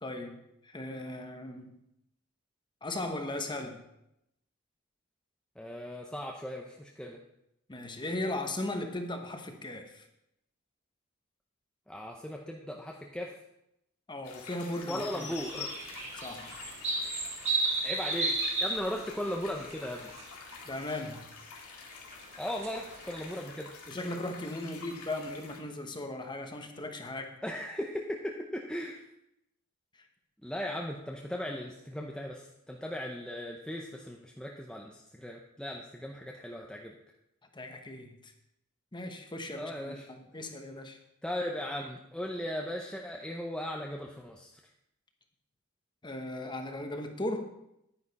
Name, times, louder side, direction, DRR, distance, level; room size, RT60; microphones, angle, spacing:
voice 1, 0.0-1.8 2.8-3.8 7.7-10.1 14.1-15.3 16.1-16.6 20.7-21.3 23.9-27.4 37.5-38.3 38.9-41.0 46.0-47.5, left 1 dB, 20° left, 5 dB, 1.1 m, -37 dB
voice 2, 5.6-7.2 11.9-13.4 14.9-15.7 17.8-20.1 22.4-23.7 27.4-29.1 30.4-36.9 39.5-40.1 41.2-44.6, equal, 5° left, -1 dB, 0.6 m, -37 dB
sound 1, 14.2-25.6, left 5 dB, 80° left, 2.0 m, -47 dB
sound 2, 15.1-20.2 20.5-20.9 22.1-23.4, right 2 dB, 30° right, 2.2 m, -33 dB
10.0 x 9.8 x 4.1 m, 0.83 s
head